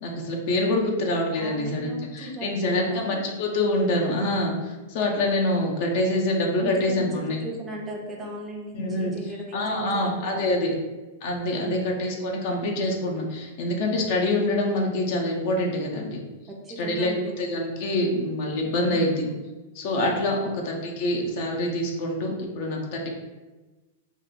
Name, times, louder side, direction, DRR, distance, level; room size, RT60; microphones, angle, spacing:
voice 1, 0.0-7.4 8.7-9.1 9.5-10.7 11.2-16.2 16.8-19.3 19.7-20.4 20.6-23.1, left 1 dB, 55° left, 0 dB, 0.5 m, -26 dB
voice 2, 1.3-3.2 6.6-10.8 11.6-11.9 16.5-17.4 18.9-19.3 20.3-20.6, right 1 dB, 20° right, -1 dB, 0.5 m, -37 dB
2.8 x 2.1 x 2.4 m, 1.2 s
hypercardioid pair, 105°, 0 cm